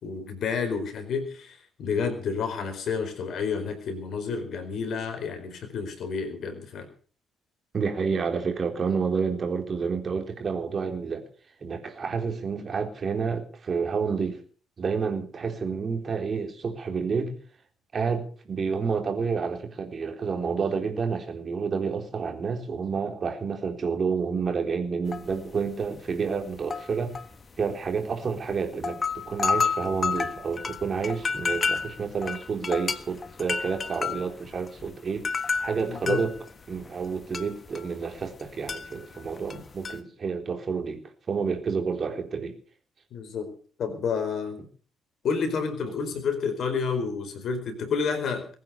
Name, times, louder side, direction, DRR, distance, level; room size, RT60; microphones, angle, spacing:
voice 1, 0.0-6.9 35.9-36.2 43.1-43.5 43.8-44.6 45.2-48.5, left 5 dB, 50° left, 4.7 m, -30 dB
voice 2, 7.7-11.3 11.6-14.4 14.8-17.4 17.9-27.1 27.6-35.3 35.6-36.3 36.7-42.6, right 5 dB, 40° right, 4.0 m, -29 dB
sound 1, 25.1-25.5 25.8-26.0 26.6-28.0 28.5-28.6 28.8-38.4 38.7-40.0, left 5 dB, 35° left, 1.5 m, -30 dB
22.0 x 9.4 x 6.9 m
figure-of-eight pair, 45°, 0 cm